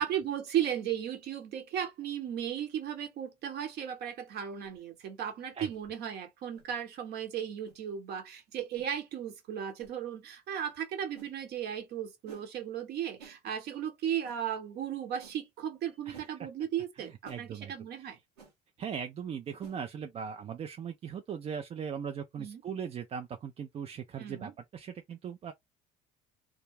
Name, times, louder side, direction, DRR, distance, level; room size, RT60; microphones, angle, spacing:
voice 1, 0.0-18.2 22.4-22.6 24.2-24.5, right 9 dB, 55° right, 0.9 m, -36 dB
sound 1, 4.6-4.8 5.7-5.9 6.5-6.7 7.6-7.8 8.7-8.9 9.8-10.0 11.1-11.3 12.3-12.5 13.2-13.4 14.2-14.4 15.2-15.4 16.1-16.3 17.2-17.4 18.4-18.5 19.6-19.8, right 7 dB, 80° right, 1.0 m, -53 dB
voice 2, 16.1-16.4 17.0-17.7 18.0-18.1 18.8-25.5, right 7 dB, 30° right, 0.4 m, -39 dB
2.3 x 2.1 x 3.2 m
hypercardioid pair, 60°, 20 cm